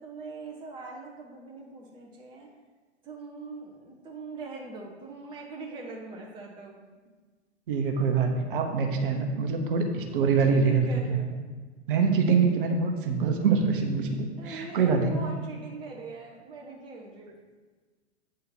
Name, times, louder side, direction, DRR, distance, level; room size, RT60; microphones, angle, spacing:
voice 1, 0.0-2.5 3.0-6.8 10.2-11.4 14.4-17.4, right 3 dB, 15° right, 0 dB, 0.6 m, -42 dB
voice 2, 7.7-11.2 11.9-15.2, right 5 dB, 45° right, 4 dB, 0.9 m, -25 dB
8.3 x 3.7 x 4.3 m, 1.4 s
figure-of-eight pair, 100°, 36 cm